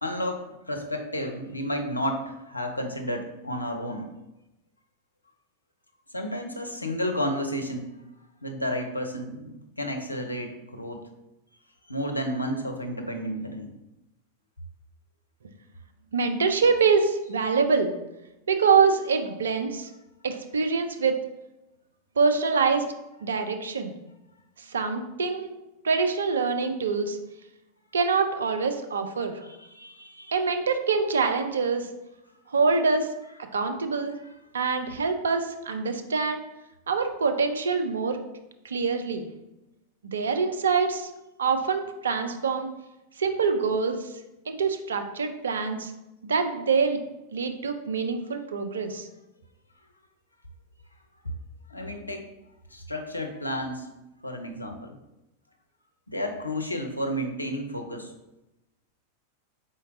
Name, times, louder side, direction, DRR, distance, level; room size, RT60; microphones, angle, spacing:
voice 1, 0.0-4.1 6.1-7.9 8.4-11.0 11.9-13.7 29.4-30.4 34.2-34.3 51.7-52.2 52.7-53.9 54.2-55.0 56.1-58.1, equal, 85° left, 4 dB, 0.5 m, -32 dB
voice 2, 16.1-18.0 18.5-19.9 20.2-21.2 22.2-22.8 23.2-23.9 24.7-25.6 25.8-27.2 27.9-29.4 30.3-31.9 32.5-33.1 33.5-34.2 34.5-36.4 36.9-38.2 38.6-39.3 40.1-41.1 41.4-42.7 43.2-44.1 44.5-45.9 46.2-47.0 47.3-49.1, right 5 dB, 70° right, 7 dB, 0.5 m, -25 dB
4.3 x 3.8 x 2.6 m, 0.95 s
figure-of-eight pair, 90°, 0 cm